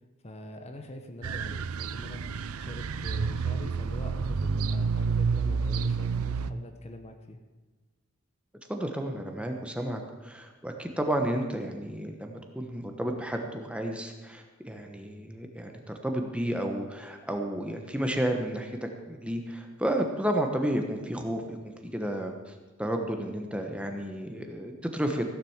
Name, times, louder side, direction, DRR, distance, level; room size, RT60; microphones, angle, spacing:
voice 1, 0.2-7.4, left 1 dB, 30° left, 5 dB, 0.9 m, -44 dB
sound 1, 1.2-6.5, right 5 dB, 90° right, 0.6 m, -29 dB
voice 2, 8.7-22.5 22.8-25.3, right 1 dB, 5° right, 3 dB, 1.1 m, -32 dB
16.0 x 7.6 x 7.2 m, 1.2 s
head